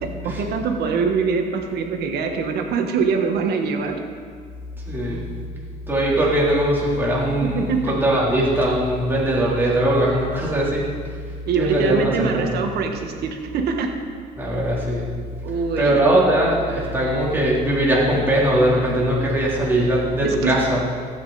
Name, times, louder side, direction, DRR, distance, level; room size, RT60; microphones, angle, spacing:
voice 1, 0.0-4.0 5.1-5.3 7.4-7.9 11.4-13.9 15.4-16.0 20.2-20.5, right 5 dB, 70° right, 4 dB, 1.5 m, -23 dB
voice 2, 4.9-5.4 5.9-10.9 11.5-12.5 14.4-15.1 15.8-20.8, right 1 dB, 10° right, -6 dB, 3.6 m, -20 dB
14.5 x 8.8 x 4.2 m, 2.1 s
cardioid pair, 110°, 17 cm